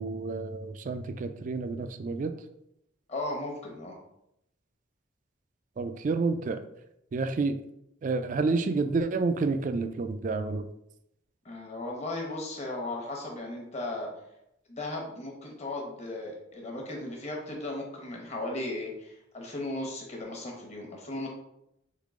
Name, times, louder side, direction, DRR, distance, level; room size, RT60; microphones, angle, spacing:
voice 1, 0.0-2.3 5.8-6.6 7.1-7.6 8.0-10.7, right 3 dB, 40° right, 9 dB, 0.3 m, -29 dB
voice 2, 3.1-4.0 11.4-14.1 14.7-21.3, left 2 dB, 35° left, 0 dB, 1.0 m, -36 dB
3.7 x 3.6 x 3.6 m, 0.82 s
head